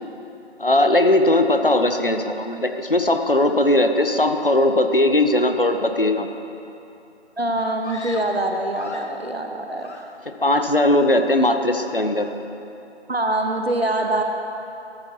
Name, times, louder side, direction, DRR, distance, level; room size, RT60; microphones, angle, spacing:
voice 1, 0.6-6.3 10.3-12.3, left 1 dB, 55° left, 6 dB, 0.6 m, -19 dB
voice 2, 7.4-9.9 13.1-14.2, right 1 dB, 65° right, 4 dB, 0.9 m, -24 dB
Screaming, 7.8-9.3 9.8-10.4 10.7-11.1, left 2 dB, 80° left, 0.9 m, -40 dB
14.0 x 8.0 x 2.9 m, 2.8 s
figure-of-eight pair, 180°, 34 cm